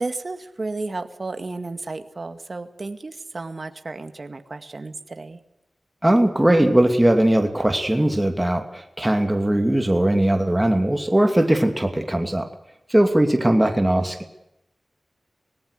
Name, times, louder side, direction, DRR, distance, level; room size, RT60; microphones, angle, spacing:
voice 1, 0.0-5.4, right 3 dB, 50° right, 8 dB, 2.0 m, -32 dB
voice 2, 6.0-12.5 12.9-14.3, right 1 dB, 15° right, 5 dB, 2.6 m, -19 dB
24.5 x 19.0 x 6.7 m, 0.86 s
wide cardioid pair, 70°, 0 cm